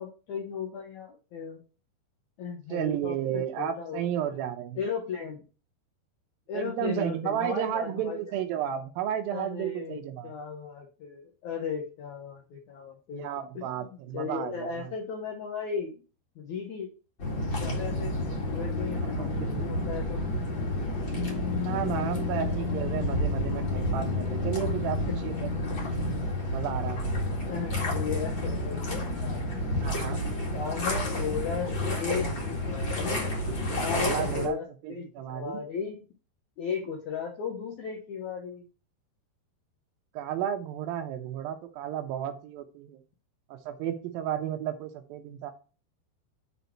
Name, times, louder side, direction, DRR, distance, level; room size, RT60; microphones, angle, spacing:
voice 1, 0.0-1.6 2.4-4.4 4.8-5.4 6.5-8.5 9.3-13.3 13.5-16.0 16.3-16.9 17.6-18.1 18.5-20.2 23.1-23.4 25.1-25.2 27.5-29.9 30.5-33.3 33.8-36.0 36.6-38.6, left 6 dB, 85° left, 0 dB, 1.6 m, -36 dB
voice 2, 2.7-4.8 6.5-10.3 13.1-14.9 19.0-19.7 21.6-25.0 25.2-25.5 26.5-27.0 29.8-30.2 33.7-34.6 34.8-35.5 40.1-43.0 43.5-45.5, right 10 dB, 80° right, 4 dB, 2.1 m, -33 dB
sound 1, 17.2-34.5, left 1 dB, 40° left, 1.9 m, -30 dB
10.0 x 4.1 x 4.6 m, 0.35 s
omnidirectional pair, 5.2 m